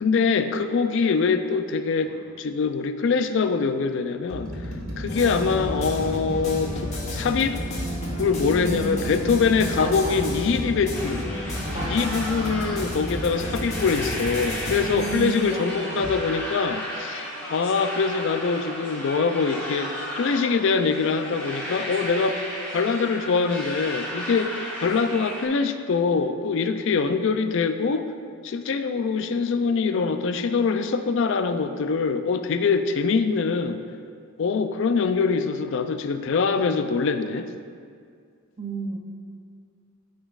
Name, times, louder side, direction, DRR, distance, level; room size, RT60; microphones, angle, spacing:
voice 1, 0.0-4.6 5.0-7.6 8.2-11.3 11.9-17.2 17.5-22.5 22.7-28.1 28.4-33.8 34.4-37.5, left 5 dB, 60° left, 9 dB, 0.4 m, -24 dB
sound 1, 2.0-2.2 3.1-3.3 3.9-15.2 16.0-16.2, equal, 80° right, 1.4 m, -35 dB
sound 2, 5.1-18.9, left 1 dB, 35° left, 1.1 m, -34 dB
voice 2, 8.2-9.2 9.8-10.3 11.7-12.2 14.9-16.1 38.6-39.0, right 3 dB, 30° right, 2 dB, 0.5 m, -33 dB
sound 3, 10.9-25.5, equal, 10° left, 1.4 m, -34 dB
12.0 x 5.1 x 2.4 m, 2.2 s
head